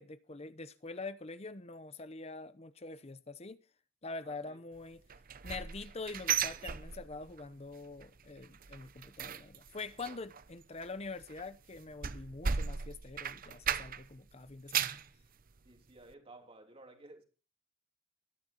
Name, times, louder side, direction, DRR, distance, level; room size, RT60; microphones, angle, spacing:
voice 1, 0.0-3.6 4.0-5.0 5.4-14.9, left 3 dB, 30° left, 0.8 m, -45 dB
voice 2, 4.2-4.6 15.6-17.2, right 2 dB, 30° right, 3.2 m, -55 dB
sound 1, 5.1-7.4 7.7-8.1 8.4-14.2 14.5-15.1 15.6-15.7 16.1-16.2, right 7 dB, 45° right, 0.7 m, -36 dB
22.0 x 11.5 x 3.0 m
head